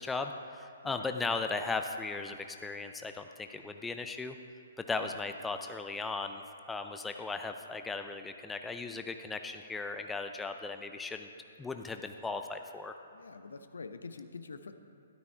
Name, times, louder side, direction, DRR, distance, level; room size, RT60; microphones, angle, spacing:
voice 1, 0.0-4.4 4.9-11.3 11.6-13.0, left 3 dB, 10° left, 6 dB, 0.6 m, -37 dB
voice 2, 0.8-1.1 5.0-5.2 13.1-14.7, left 4 dB, 75° left, 9 dB, 0.8 m, -46 dB
13.0 x 12.0 x 4.5 m, 2.4 s
figure-of-eight pair, 125°, 0 cm